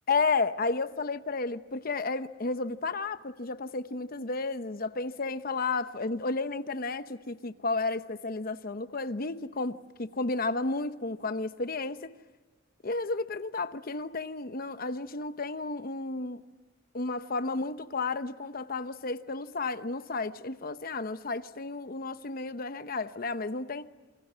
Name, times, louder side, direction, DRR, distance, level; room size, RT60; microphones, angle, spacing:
voice 1, 0.1-12.1 12.8-16.4 16.9-23.9, left 3 dB, 50° left, 0.9 m, -32 dB
28.5 x 24.5 x 7.5 m
head